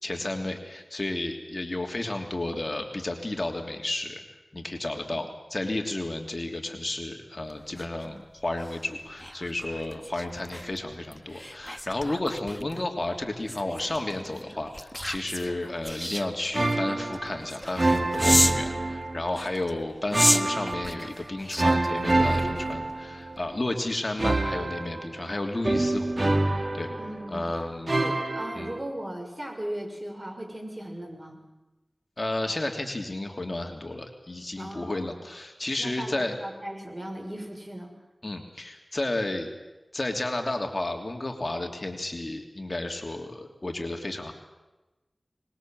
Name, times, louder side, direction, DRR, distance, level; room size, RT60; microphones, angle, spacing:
voice 1, 0.0-4.2 4.5-26.9 27.3-27.9 28.5-28.7 32.2-36.3 38.2-39.5 39.9-44.3, left 2 dB, 45° left, 3 dB, 3.0 m, -32 dB
sound 1, 7.5-18.7 19.3-22.9 23.3-23.6, equal, 5° left, 1.6 m, -32 dB
sound 2, 16.5-17.4 17.8-19.5 20.1-21.1 21.6-23.5 24.2-27.4 27.9-28.8, right 2 dB, 55° right, 2.0 m, -26 dB
voice 2, 27.0-31.4 34.5-35.1 35.8-37.9, right 1 dB, 25° right, 3 dB, 6.4 m, -38 dB
24.0 x 21.5 x 7.7 m, 1.1 s
wide cardioid pair, 40°, 0 cm